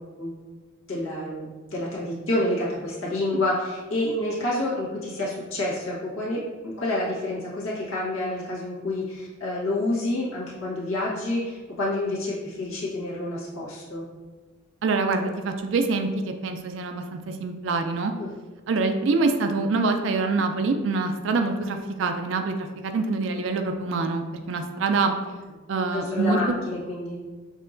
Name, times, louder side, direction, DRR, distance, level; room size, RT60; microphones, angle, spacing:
voice 1, 0.9-14.0 18.2-18.3 25.9-27.1, left 1 dB, 75° left, -6 dB, 1.4 m, -28 dB
voice 2, 14.8-18.1 18.7-25.1 25.7-26.4, right 3 dB, 60° right, 5 dB, 0.3 m, -25 dB
6.4 x 2.8 x 2.5 m, 1.3 s
head